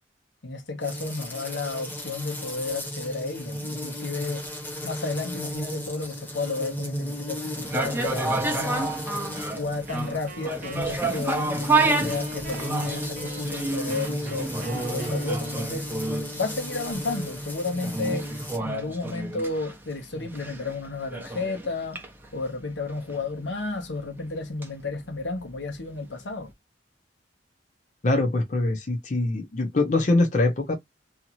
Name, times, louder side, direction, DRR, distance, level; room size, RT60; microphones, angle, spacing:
voice 1, 0.4-4.5 4.8-8.9 9.5-15.9 16.4-18.3 18.6-22.0 22.3-26.5, left 3 dB, 85° left, 1.0 m, -32 dB
sound 1, 0.8-18.6, equal, 10° left, 0.9 m, -35 dB
sound 2, 7.6-25.8 26.1-26.2, right 3 dB, 10° right, 0.6 m, -30 dB
Wind instrument woodwind instrument, 9.9-15.9, right 3 dB, 45° right, 0.9 m, -43 dB
voice 2, 28.0-30.8, left 2 dB, 40° left, 0.6 m, -23 dB
2.8 x 2.4 x 2.7 m
head